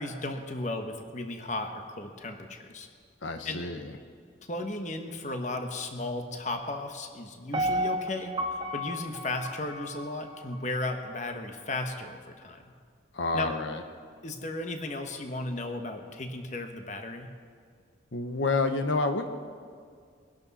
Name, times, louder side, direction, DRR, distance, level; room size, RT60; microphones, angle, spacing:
voice 1, 0.0-2.9 3.4-3.6 4.5-12.7 13.3-13.5 14.2-17.3, left 2 dB, 40° left, 5 dB, 1.2 m, -35 dB
voice 2, 3.2-3.9 13.1-13.8 18.1-19.3, left 3 dB, 75° left, 6 dB, 1.0 m, -29 dB
Piano, 7.5-10.6 11.1-11.2, equal, 30° right, 1.0 m, -33 dB
22.5 x 11.5 x 4.2 m, 2.1 s
head